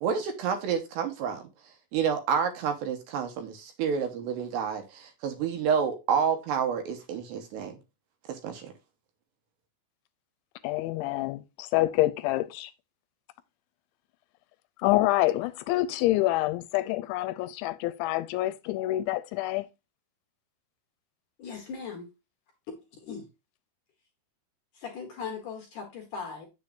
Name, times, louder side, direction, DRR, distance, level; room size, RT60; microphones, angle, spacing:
voice 1, 0.0-1.4 1.9-7.8 8.3-8.7, right 7 dB, 75° right, 3.0 m, -29 dB
voice 2, 10.6-12.7 14.8-19.7, left 17 dB, 85° left, 2.9 m, -27 dB
voice 3, 21.4-22.1 22.9-23.3 24.7-26.5, left 5 dB, 60° left, 2.2 m, -39 dB
8.2 x 7.0 x 2.6 m
omnidirectional pair, 5.4 m